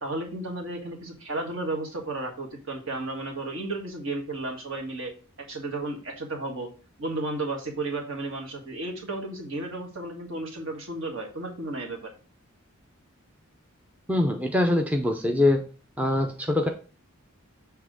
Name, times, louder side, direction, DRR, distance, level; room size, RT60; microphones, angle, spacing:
voice 1, 0.0-6.7 7.0-12.1, right 2 dB, 60° right, 1 dB, 1.8 m, -33 dB
voice 2, 14.1-15.6 16.0-16.7, left 1 dB, 5° right, 3 dB, 0.5 m, -23 dB
7.4 x 3.3 x 5.0 m, 0.36 s
head